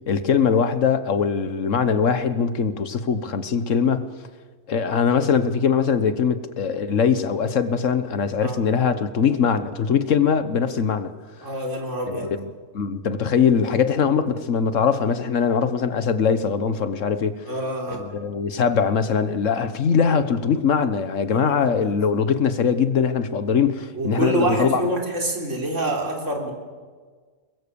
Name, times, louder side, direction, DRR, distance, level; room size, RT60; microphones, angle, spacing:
voice 1, 0.1-4.1 4.7-11.1 12.1-12.4 12.7-17.3 17.9-24.8, left 6 dB, 70° left, 1.5 m, -21 dB
voice 2, 11.4-12.3 17.5-18.0 21.3-21.8 23.9-26.5, right 1 dB, 65° right, 4.0 m, -26 dB
22.5 x 21.0 x 7.0 m
omnidirectional pair, 1.4 m